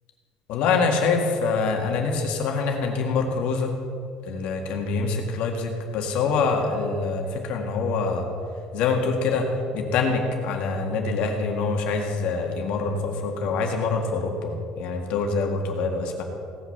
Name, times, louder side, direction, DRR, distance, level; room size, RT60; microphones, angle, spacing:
voice 1, 0.5-3.7 4.2-8.3 8.7-16.2, left 4 dB, 60° left, 2 dB, 1.9 m, -25 dB
17.0 x 5.9 x 7.1 m, 2.4 s
cardioid pair, 165°, 2 cm